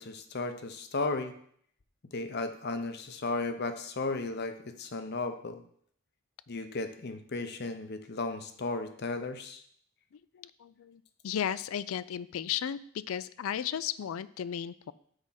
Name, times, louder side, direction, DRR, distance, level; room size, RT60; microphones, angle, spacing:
voice 1, 0.0-1.3 2.1-5.6 6.5-9.6, left 3 dB, 50° left, 8 dB, 0.7 m, -35 dB
voice 2, 10.3-12.8 13.1-14.9, left 9 dB, 70° left, 17 dB, 0.3 m, -34 dB
6.5 x 4.8 x 5.6 m, 0.63 s
head